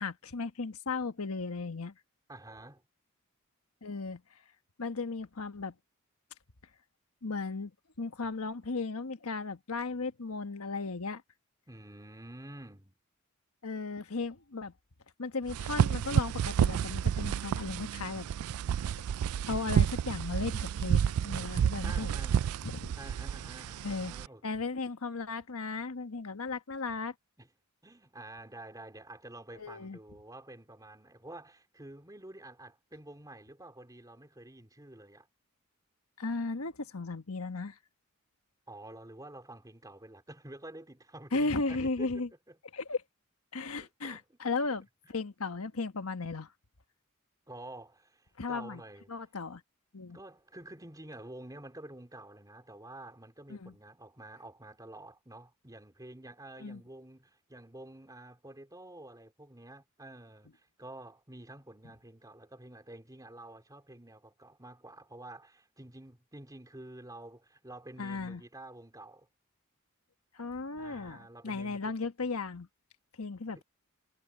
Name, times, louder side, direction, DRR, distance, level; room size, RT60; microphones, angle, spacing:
voice 1, 0.0-1.9 3.8-4.2 4.8-5.7 7.2-7.7 8.0-11.2 13.6-14.7 15.2-18.3 19.5-22.1 22.6-22.9 23.8-24.1 24.4-27.1 29.5-30.0 36.2-37.8 41.3-42.3 42.7-43.0 43.5-44.8 45.1-46.5 48.4-48.8 49.1-49.6 49.9-50.2 53.5-53.7 56.6-56.8 68.0-68.4 70.3-72.7 73.2-73.6, left 3 dB, 90° left, 1.3 m, -35 dB
voice 2, 2.3-2.8 11.7-13.0 21.8-22.5 23.0-24.4 27.4-27.5 27.8-35.3 38.7-42.5 43.8-44.4 47.5-49.1 50.1-69.3 70.8-71.9 73.5-73.6, right 1 dB, 15° right, 3.2 m, -49 dB
sound 1, 15.5-24.3, right 8 dB, 85° right, 0.3 m, -30 dB
head